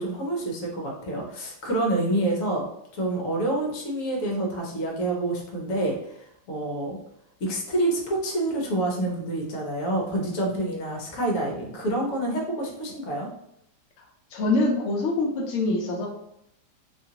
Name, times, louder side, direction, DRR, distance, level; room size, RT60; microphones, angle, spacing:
voice 1, 0.0-2.7 2.9-7.0 7.4-13.3, right 1 dB, 55° left, -1 dB, 1.0 m, -27 dB
voice 2, 14.3-16.1, left 2 dB, 75° left, -1 dB, 0.7 m, -24 dB
2.9 x 2.4 x 2.8 m, 0.78 s
omnidirectional pair, 1.9 m